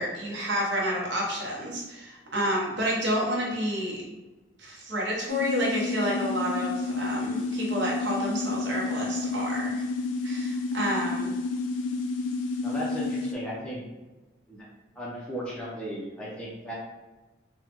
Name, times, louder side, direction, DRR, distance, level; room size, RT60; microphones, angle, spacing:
voice 1, 0.0-4.0 4.6-9.9 10.2-11.3, equal, 65° right, -3 dB, 0.8 m, -29 dB
sound 1, 5.3-13.3, left 3 dB, 75° left, 0.4 m, -30 dB
voice 2, 12.6-13.8 14.5-14.7 15.0-16.7, equal, 5° left, -7 dB, 0.4 m, -36 dB
3.5 x 2.1 x 2.9 m, 1.2 s
head